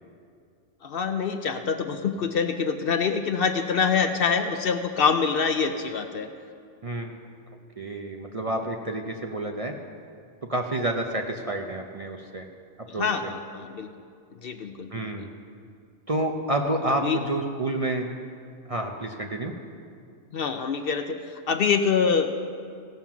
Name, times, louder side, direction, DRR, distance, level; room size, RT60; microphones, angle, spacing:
voice 1, 0.8-6.3 12.9-13.9 14.4-15.3 17.0-17.2 20.3-22.5, left 6 dB, 60° left, 7 dB, 0.7 m, -25 dB
voice 2, 6.8-7.2 7.8-9.7 10.5-12.5 12.9-13.3 14.9-15.3 16.1-18.1 18.7-19.5, right 1 dB, 35° right, 2 dB, 0.6 m, -29 dB
16.0 x 7.3 x 6.0 m, 2.3 s
omnidirectional pair, 1.2 m